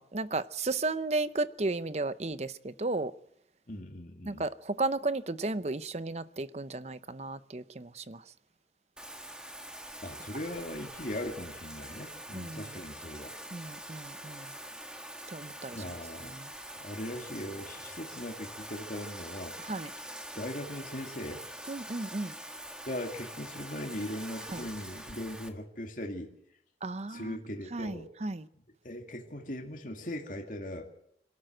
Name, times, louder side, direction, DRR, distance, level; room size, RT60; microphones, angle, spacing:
voice 1, 0.0-3.1 4.3-8.2 12.3-12.7 13.5-14.5 15.3-15.8 16.3-16.5 19.7-19.9 21.7-22.3 24.5-24.6 26.8-27.3 27.7-28.4, right 2 dB, 40° right, 0.7 m, -34 dB
voice 2, 3.7-4.4 10.0-13.3 15.7-16.3 16.8-19.6 20.3-21.4 22.8-26.3 27.1-28.1 28.8-30.9, left 1 dB, 50° left, 2.3 m, -39 dB
Bathtub (filling or washing), 9.0-25.5, right 1 dB, 5° right, 1.6 m, -44 dB
26.5 x 13.0 x 7.8 m
head